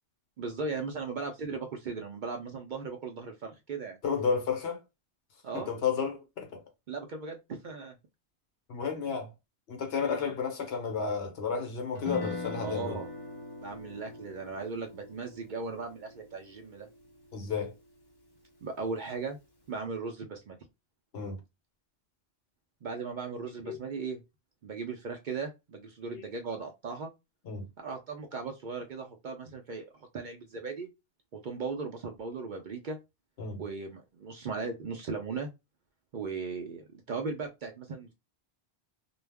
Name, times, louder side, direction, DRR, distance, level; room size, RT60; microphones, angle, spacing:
voice 1, 0.4-4.0 5.4-5.7 6.9-7.9 10.0-10.4 12.6-13.1 13.6-16.9 18.6-19.4 19.7-20.6 22.8-24.2 24.6-27.1 27.8-30.9 31.3-33.0 33.6-35.5 36.1-38.1, right 4 dB, 60° right, 0.5 m, -37 dB
voice 2, 4.0-4.8 5.5-6.6 8.7-9.3 9.7-13.0 17.3-17.7 21.1-21.4 23.6-23.8 26.1-26.2 27.4-27.6 33.4-33.6, left 6 dB, 65° left, 1.0 m, -32 dB
Guitar, 11.9-18.1, left 2 dB, 35° left, 0.4 m, -43 dB
2.3 x 2.0 x 3.3 m
omnidirectional pair, 1.1 m